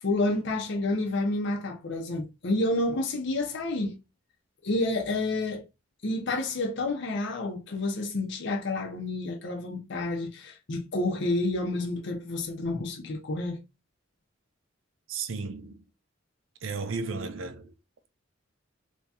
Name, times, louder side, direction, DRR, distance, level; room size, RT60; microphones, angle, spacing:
voice 1, 0.0-4.0 4.6-5.6 6.0-13.6, left 2 dB, 65° left, 0.7 m, -29 dB
voice 2, 15.1-15.8 16.6-17.7, right 4 dB, 75° right, 0.6 m, -34 dB
3.0 x 2.8 x 3.5 m
head